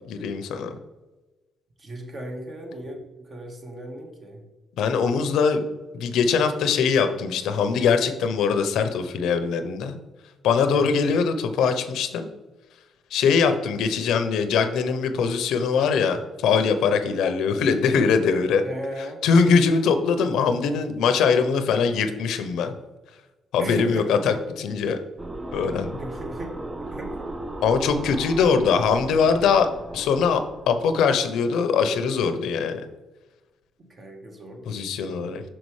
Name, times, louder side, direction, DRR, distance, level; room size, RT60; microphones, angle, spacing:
voice 1, 0.0-0.8 4.8-5.6 5.9-10.0 10.4-12.3 13.1-18.6 19.2-22.7 23.5-25.0 25.5-26.0 27.6-29.7 29.9-32.9 34.7-35.4, left 5 dB, 85° left, 8 dB, 0.6 m, -22 dB
voice 2, 1.8-4.4 10.7-11.0 18.6-19.2 23.6-24.4 26.0-27.3 33.8-34.8, equal, 40° right, 2 dB, 1.3 m, -36 dB
sound 1, 25.2-30.9, right 1 dB, 20° right, 0.5 m, -36 dB
6.0 x 5.3 x 3.1 m, 1.1 s
cardioid pair, 90°, 0 cm